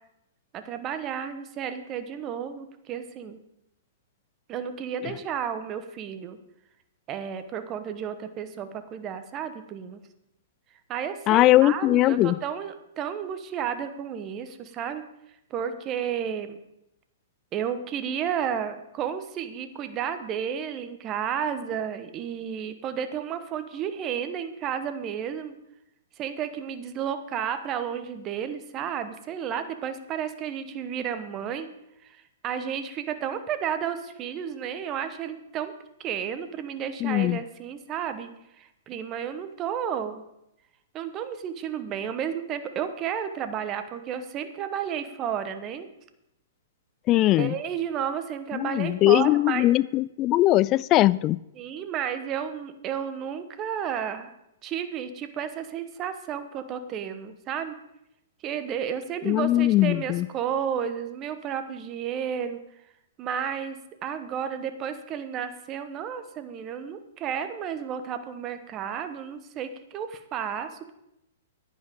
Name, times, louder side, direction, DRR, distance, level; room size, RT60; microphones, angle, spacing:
voice 1, 0.5-3.4 4.5-6.4 7.1-10.0 10.9-15.0 15.5-16.6 17.5-25.5 26.2-31.7 32.0-32.2 32.4-35.7 36.0-38.3 38.6-40.2 40.9-45.9 47.1-49.7 51.6-54.3 54.6-57.8 58.4-62.6 63.2-70.9, right 8 dB, 30° right, 10 dB, 1.2 m, -32 dB
voice 2, 11.3-12.4 37.0-37.4 47.1-47.6 48.5-51.4 59.2-60.3, left 16 dB, 35° left, 20 dB, 0.4 m, -20 dB
15.0 x 10.5 x 3.7 m, 0.84 s
hypercardioid pair, 120°, 0 cm